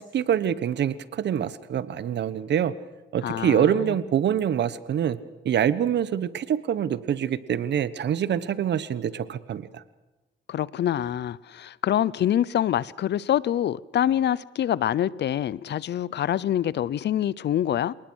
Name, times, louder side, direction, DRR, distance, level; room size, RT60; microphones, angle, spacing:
voice 1, 0.0-2.7 3.1-5.2 5.4-9.8, right 9 dB, 60° right, 1.2 m, -25 dB
voice 2, 3.2-3.7 10.5-17.9, left 11 dB, 60° left, 0.7 m, -25 dB
27.5 x 19.5 x 6.4 m
cardioid pair, 90°, 20 cm